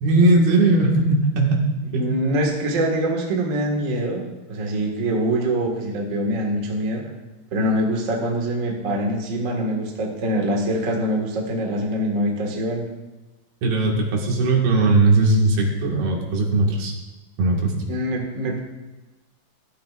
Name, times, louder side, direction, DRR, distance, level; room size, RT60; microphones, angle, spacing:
voice 1, 0.0-2.0 13.6-17.0 17.4-17.7, right 2 dB, 85° right, -1 dB, 3.8 m, -19 dB
voice 2, 1.9-7.1 7.5-12.8 17.9-18.6, right 1 dB, 45° right, 0 dB, 1.0 m, -24 dB
14.5 x 12.5 x 2.5 m, 1.1 s
omnidirectional pair, 4.4 m